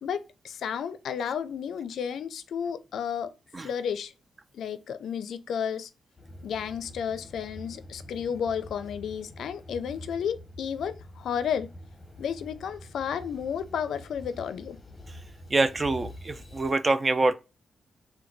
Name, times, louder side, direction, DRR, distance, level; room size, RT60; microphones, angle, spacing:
voice 1, 0.0-3.3 3.6-4.1 4.5-5.9 6.4-11.7 12.2-14.8, left 7 dB, 85° left, 0.4 m, -32 dB
sound 1, 6.2-16.7, left 1 dB, 25° left, 0.8 m, -46 dB
voice 2, 15.5-17.3, right 3 dB, 30° right, 0.4 m, -25 dB
3.8 x 2.2 x 4.4 m
wide cardioid pair, 120°, 0 cm